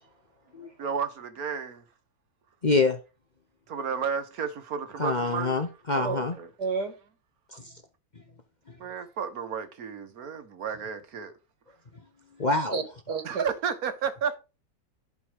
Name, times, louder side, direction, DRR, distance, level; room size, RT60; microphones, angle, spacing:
voice 1, 0.8-1.8 3.7-5.6 5.9-6.5 8.8-11.3 13.2-14.4, right 7 dB, 65° right, 1.6 m, -32 dB
voice 2, 2.6-3.0 5.0-6.3 12.4-12.8, left 3 dB, 35° left, 0.8 m, -25 dB
voice 3, 6.6-6.9 12.7-13.4, right 5 dB, 85° right, 2.2 m, -30 dB
11.0 x 5.0 x 5.1 m
omnidirectional pair, 1.7 m